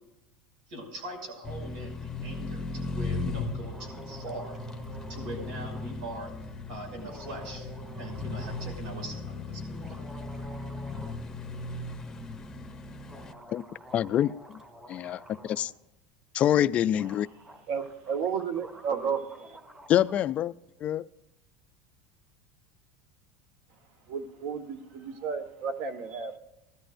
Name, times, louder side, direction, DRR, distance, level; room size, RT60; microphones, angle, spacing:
voice 1, 0.7-4.6 5.1-6.3 6.7-7.7 8.0-10.0, right 1 dB, 80° right, 4 dB, 6.0 m, -41 dB
sound 1, 1.4-13.3, left 3 dB, 10° left, 0.8 m, -37 dB
sound 2, 3.7-5.9 7.0-8.8 9.6-11.2 11.5-11.6 13.0-15.7 16.7-16.8 16.9-20.2, right 2 dB, 15° right, 2.0 m, -48 dB
voice 2, 13.9-14.3 14.9-15.7 16.3-17.3 19.9-20.5 20.8-21.0, left 11 dB, 30° left, 15 dB, 0.4 m, -25 dB
voice 3, 17.7-19.4 24.1-26.4, right 6 dB, 55° right, 9 dB, 1.5 m, -32 dB
20.0 x 13.5 x 2.6 m, 0.91 s
supercardioid pair, 155°, 4 cm